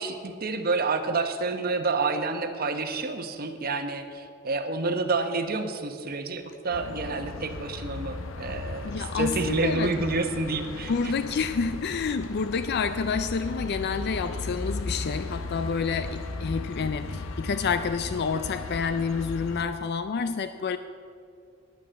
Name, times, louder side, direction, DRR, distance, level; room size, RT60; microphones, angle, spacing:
voice 1, 0.0-11.1, right 3 dB, 50° right, 7 dB, 0.9 m, -29 dB
sound 1, 6.7-19.7, left 3 dB, 80° left, 0.7 m, -36 dB
voice 2, 8.8-10.0 10.9-20.8, left 5 dB, 55° left, 11 dB, 0.4 m, -29 dB
10.5 x 9.2 x 7.5 m, 2.3 s
head